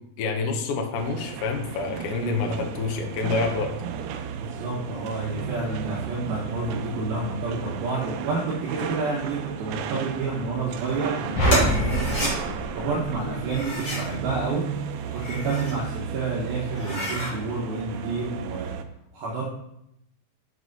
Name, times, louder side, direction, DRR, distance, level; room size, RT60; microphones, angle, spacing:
voice 1, 0.2-3.7, left 4 dB, 85° left, 2 dB, 1.8 m, -27 dB
sound 1, 1.0-18.8, right 7 dB, 90° right, 2.1 m, -34 dB
voice 2, 4.3-14.6 15.0-18.7 19.1-19.4, right 3 dB, 70° right, -4 dB, 2.7 m, -29 dB
sound 2, 11.4-13.8, equal, 70° left, 1.0 m, -26 dB
sound 3, 11.5-12.3 13.4-14.1 15.0-15.8 16.2-16.3 16.7-17.3, equal, 30° left, 2.6 m, -29 dB
6.2 x 6.2 x 4.0 m, 0.78 s
omnidirectional pair, 4.9 m